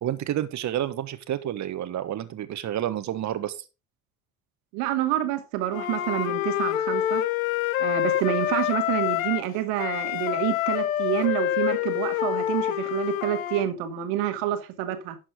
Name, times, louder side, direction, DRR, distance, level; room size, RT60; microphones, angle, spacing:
voice 1, 0.0-3.6, right 11 dB, 40° right, 1.3 m, -29 dB
voice 2, 4.7-7.2 7.8-15.2, right 12 dB, 65° right, 1.8 m, -28 dB
Wind instrument woodwind instrument, 5.7-9.5 9.8-13.6, left 12 dB, 75° left, 0.9 m, -27 dB
11.5 x 7.5 x 3.6 m
figure-of-eight pair, 60°, 41 cm